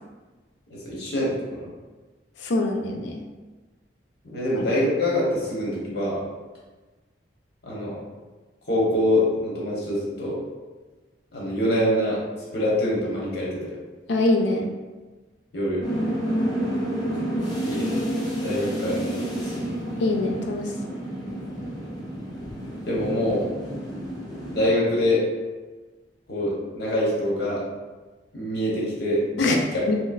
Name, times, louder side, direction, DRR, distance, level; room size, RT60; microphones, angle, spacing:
voice 1, 0.7-1.7 4.2-6.2 7.6-8.0 8.7-10.4 11.3-12.2 12.5-13.7 15.5-15.8 17.6-18.0 18.4-19.7 22.9-23.5 24.5-25.2 26.3-27.6 28.3-29.8, left 1 dB, 65° left, -5 dB, 1.0 m, -25 dB
voice 2, 2.4-3.2 4.6-4.7 14.1-14.7 20.0-20.7 29.4-29.6 29.9-30.0, left 2 dB, 85° left, 2 dB, 0.5 m, -23 dB
sound 1, 15.8-24.7, equal, 25° left, 0.8 m, -29 dB
3.0 x 2.8 x 2.4 m, 1.3 s
head